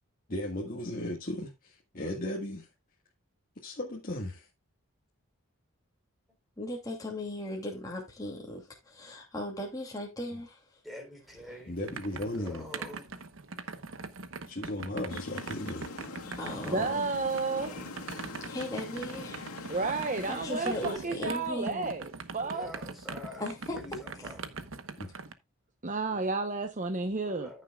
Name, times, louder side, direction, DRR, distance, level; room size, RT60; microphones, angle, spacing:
voice 1, 0.3-2.7 3.6-4.5 11.7-12.6 14.5-15.9 25.0-25.1, left 1 dB, 40° left, 1.7 m, -36 dB
voice 2, 6.6-10.6 16.4-17.1 18.5-19.5 20.3-22.0 23.4-23.8, left 1 dB, 15° left, 2.6 m, -37 dB
voice 3, 10.8-11.8 12.3-13.1 17.5-18.4 22.4-23.4 23.7-24.5 27.2-27.6, left 1 dB, ahead, 4.0 m, -47 dB
sound 1, 11.3-25.3, right 4 dB, 60° right, 1.0 m, -42 dB
sound 2, 15.1-21.0, left 3 dB, 80° left, 2.4 m, -43 dB
voice 4, 16.6-17.7 18.2-18.4 19.7-22.7 25.8-27.6, right 3 dB, 35° right, 0.9 m, -32 dB
14.5 x 6.7 x 2.3 m
head